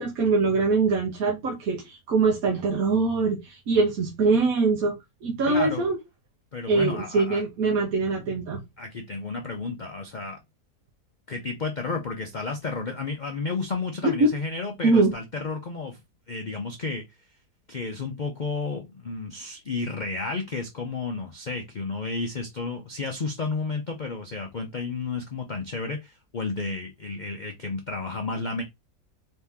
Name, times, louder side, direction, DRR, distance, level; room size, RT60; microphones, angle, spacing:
voice 1, 0.0-4.9 5.2-6.0 6.7-8.6 14.0-14.3 14.8-15.1, right 3 dB, 60° right, 1.3 m, -23 dB
voice 2, 5.5-5.9 6.5-7.4 8.8-10.4 11.3-16.0 16.3-17.0 17.7-28.6, left 4 dB, 75° left, 0.4 m, -32 dB
4.1 x 2.8 x 3.5 m
omnidirectional pair, 1.8 m